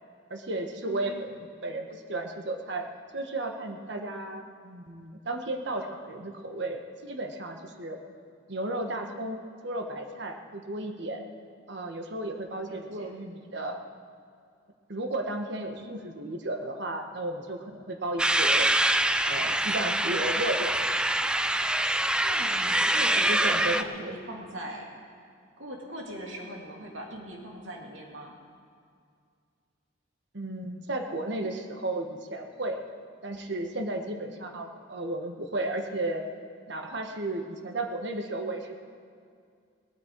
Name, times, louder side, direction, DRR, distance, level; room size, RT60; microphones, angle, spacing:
voice 1, 0.3-8.0 8.5-11.2 11.7-13.8 14.9-18.9 19.2-20.8 23.3-24.1 30.3-32.8 33.2-36.2 36.7-38.8, right 2 dB, 65° right, 4 dB, 1.3 m, -34 dB
voice 2, 0.8-1.4 12.4-13.1 15.6-16.1 22.2-24.8 25.1-25.2 25.6-28.3, right 1 dB, 80° right, -1 dB, 2.5 m, -41 dB
sound 1, 18.2-23.8, right 1 dB, 5° right, 0.3 m, -25 dB
19.0 x 12.5 x 4.6 m, 2.3 s
head